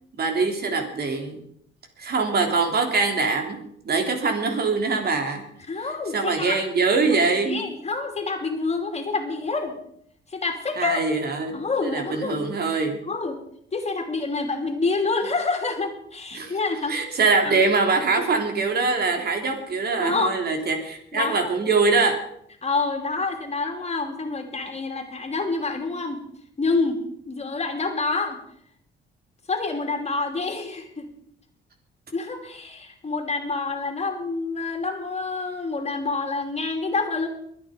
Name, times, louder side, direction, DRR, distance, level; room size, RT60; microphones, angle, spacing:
voice 1, 0.2-1.4 2.0-5.4 6.1-7.6 10.8-13.0 16.3-16.5 16.9-22.2, right 4 dB, 50° right, 4 dB, 3.3 m, -23 dB
voice 2, 5.7-6.6 7.4-9.8 10.3-11.0 11.5-12.4 13.0-13.4 13.7-17.1 17.4-17.6 20.0-20.4 21.1-21.5 22.6-26.2 26.6-27.0 27.3-28.4 29.5-31.1 32.1-37.3, left 3 dB, 35° left, 4 dB, 2.9 m, -27 dB
23.0 x 9.3 x 5.1 m, 0.67 s
cardioid pair, 90°, 20 cm